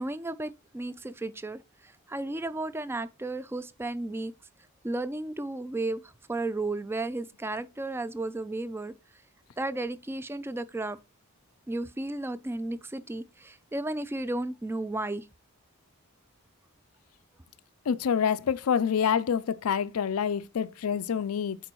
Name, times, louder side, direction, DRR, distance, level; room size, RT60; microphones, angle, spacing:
voice 1, 0.0-4.3 4.8-8.9 9.6-11.0 11.7-15.3, right 2 dB, 10° right, 0.3 m, -34 dB
voice 2, 17.9-21.6, left 7 dB, 90° left, 0.4 m, -27 dB
9.1 x 4.5 x 3.0 m
head